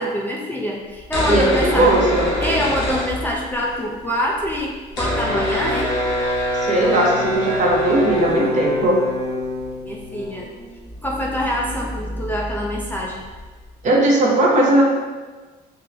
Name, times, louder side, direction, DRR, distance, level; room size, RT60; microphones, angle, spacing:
voice 1, 0.0-1.9 2.4-6.0 9.8-10.5 11.0-13.2, equal, 10° left, -3 dB, 0.3 m, -25 dB
sound 1, 1.0-3.7 4.0-4.1 4.2-13.7, left 1 dB, 85° left, 0.9 m, -25 dB
voice 2, 1.3-2.3 6.5-9.0 13.8-14.8, right 1 dB, 45° right, -2 dB, 0.7 m, -17 dB
3.7 x 2.0 x 2.6 m, 1.3 s
cardioid pair, 110°, 17 cm